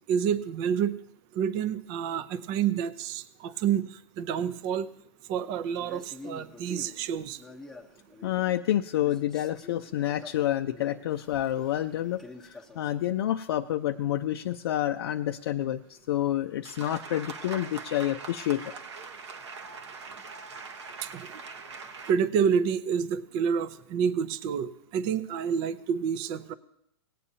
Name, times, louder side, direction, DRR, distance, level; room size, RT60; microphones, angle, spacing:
voice 1, 0.1-1.0 1.3-3.9 4.2-4.9 5.3-7.4 21.0-21.3 22.1-26.5, right 7 dB, 30° right, 14 dB, 0.6 m, -28 dB
Male speech man speaking, 5.7-8.7 9.0-13.1, left 3 dB, ahead, 0.9 m, -48 dB
voice 2, 8.2-18.7, left 12 dB, 60° left, 5 dB, 0.5 m, -29 dB
sound 1, 16.7-22.1, right 5 dB, 85° right, 1.1 m, -42 dB
18.5 x 8.5 x 2.8 m, 0.77 s
hypercardioid pair, 145°, 14 cm